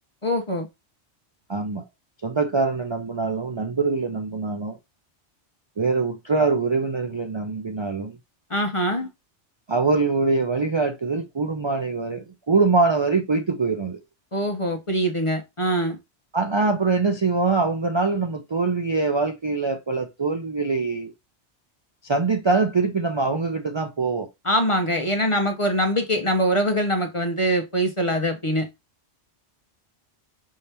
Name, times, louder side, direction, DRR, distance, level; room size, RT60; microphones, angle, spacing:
voice 1, 0.2-0.7 8.5-9.1 14.3-16.0 24.4-28.7, equal, 35° left, 0.6 m, -23 dB
voice 2, 1.5-1.8 2.2-4.8 5.8-8.2 9.7-14.0 16.3-21.1 22.0-24.3, right 3 dB, 40° right, 0.4 m, -23 dB
5.5 x 2.9 x 3.3 m
omnidirectional pair, 1.2 m